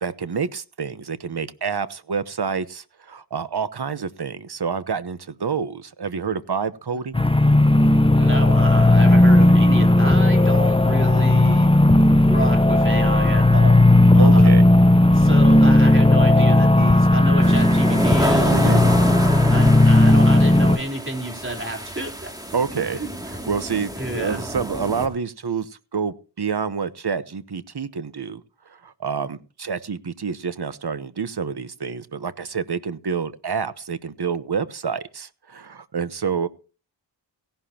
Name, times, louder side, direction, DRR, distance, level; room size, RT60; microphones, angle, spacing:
voice 1, 0.0-7.2 14.2-14.6 18.5-18.8 22.5-23.0 23.3-28.4 28.8-36.5, right 6 dB, 60° right, 1.0 m, -28 dB
sound 1, 7.1-20.8, left 1 dB, 10° left, 0.8 m, -15 dB
voice 2, 8.1-11.7 12.3-14.6 15.1-18.9 19.5-22.3 22.9-23.1 24.0-24.4, right 1 dB, 25° right, 3.9 m, -30 dB
sound 2, 17.4-25.1, equal, 10° right, 2.5 m, -28 dB
17.0 x 11.5 x 2.9 m
wide cardioid pair, 50°, 44 cm